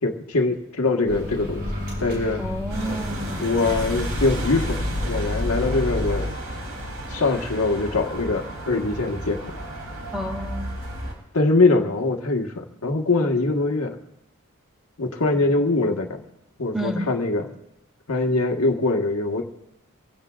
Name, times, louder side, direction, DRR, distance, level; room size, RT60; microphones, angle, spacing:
voice 1, 0.0-1.7 2.0-2.4 3.4-6.3 7.1-9.5 11.3-14.0 15.0-16.2 16.6-17.5 18.1-19.4, left 3 dB, 80° left, 3 dB, 1.4 m, -23 dB
Microwave oven, 1.1-6.2, left 1 dB, 50° right, 6.4 m, -29 dB
voice 2, 2.4-3.8 10.1-10.7 16.7-17.1, equal, ahead, 2 dB, 2.2 m, -30 dB
sound 1, 2.7-11.1, right 1 dB, 85° right, 3.4 m, -34 dB
25.0 x 16.0 x 2.4 m, 0.86 s
head